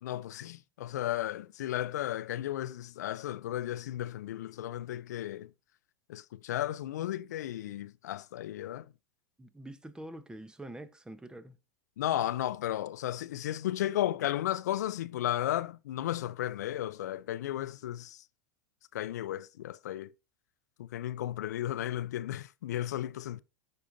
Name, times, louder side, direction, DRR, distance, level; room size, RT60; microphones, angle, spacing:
voice 1, 0.0-5.5 6.1-8.9 12.0-18.2 18.9-20.1 20.8-23.4, left 13 dB, 80° left, 0.4 m, -34 dB
voice 2, 9.4-11.6, right 1 dB, 10° right, 0.8 m, -45 dB
13.0 x 5.2 x 2.6 m
hypercardioid pair, 100°, 9 cm